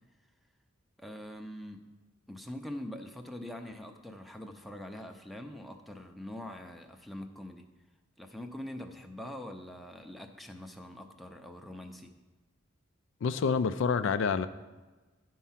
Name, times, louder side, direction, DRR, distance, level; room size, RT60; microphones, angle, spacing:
voice 1, 1.0-1.9 2.3-7.7 8.2-12.1, left 1 dB, ahead, 3 dB, 0.5 m, -43 dB
voice 2, 13.2-14.5, left 5 dB, 60° left, 11 dB, 0.4 m, -27 dB
10.5 x 4.6 x 5.7 m, 1.2 s
head